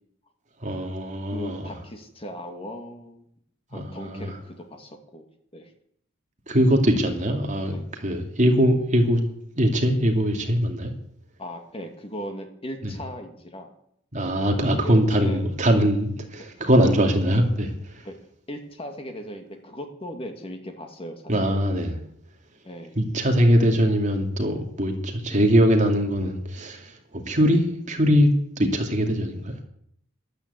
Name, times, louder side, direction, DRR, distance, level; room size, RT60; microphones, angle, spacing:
voice 1, 0.6-1.7 3.7-4.4 6.5-7.7 8.0-9.2 9.6-10.9 12.8-12.9 14.1-18.0 21.3-22.0 23.0-28.3 28.6-29.5, equal, 35° right, 2.6 m, -22 dB
voice 2, 1.3-3.3 3.7-5.3 5.5-5.7 7.7-7.9 11.4-13.7 14.8-15.5 16.4-16.5 16.8-17.0 18.0-18.2 18.5-21.5 22.6-23.0 25.2-25.4 27.4-27.5, equal, 30° left, 2.2 m, -38 dB
13.0 x 12.0 x 8.2 m
head